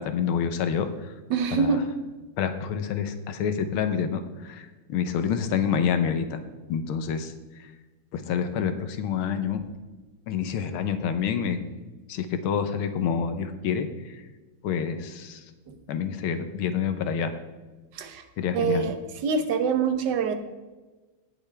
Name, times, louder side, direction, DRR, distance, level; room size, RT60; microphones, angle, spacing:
voice 1, 0.0-1.1 1.5-1.8 2.4-6.4 6.7-7.7 8.1-9.6 10.3-11.6 12.1-14.2 14.6-15.4 15.9-17.3 18.4-18.9, left 7 dB, 85° left, 9 dB, 1.7 m, -28 dB
voice 2, 1.3-1.9 15.7-15.8 17.9-18.2 18.5-19.0 19.2-20.3, right 5 dB, 60° right, 8 dB, 1.5 m, -25 dB
18.0 x 7.1 x 3.4 m, 1.2 s
omnidirectional pair, 2.3 m